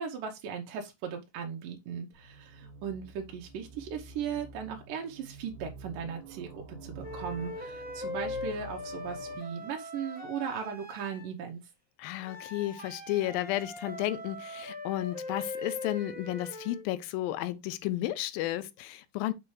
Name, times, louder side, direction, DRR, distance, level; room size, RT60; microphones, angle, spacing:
voice 1, 0.0-11.6, right 7 dB, 75° right, 2.5 m, -37 dB
sound 1, 2.1-9.4, right 4 dB, 60° right, 2.5 m, -48 dB
sound 2, 7.0-11.3 12.2-16.9, left 2 dB, 10° right, 0.5 m, -41 dB
voice 2, 12.0-19.3, left 15 dB, 90° left, 2.4 m, -33 dB
6.7 x 5.5 x 3.2 m
omnidirectional pair, 4.0 m